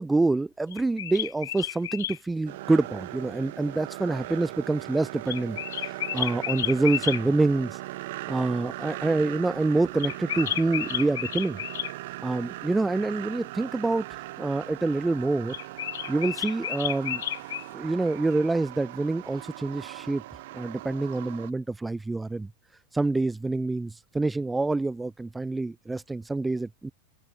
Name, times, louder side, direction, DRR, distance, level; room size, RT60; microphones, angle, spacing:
voice 1, 0.0-7.8 8.3-11.6 12.2-15.5 16.1-17.2 17.7-22.5 22.9-26.9, right 3 dB, 10° right, 6.6 m, -27 dB
sound 1, 0.7-2.2 5.3-7.2 10.0-11.9 15.5-17.7, left 12 dB, 60° left, 1.8 m, -32 dB
sound 2, 2.5-21.5, right 18 dB, 50° right, 5.1 m, -39 dB
open air
figure-of-eight pair, 90°, 0 cm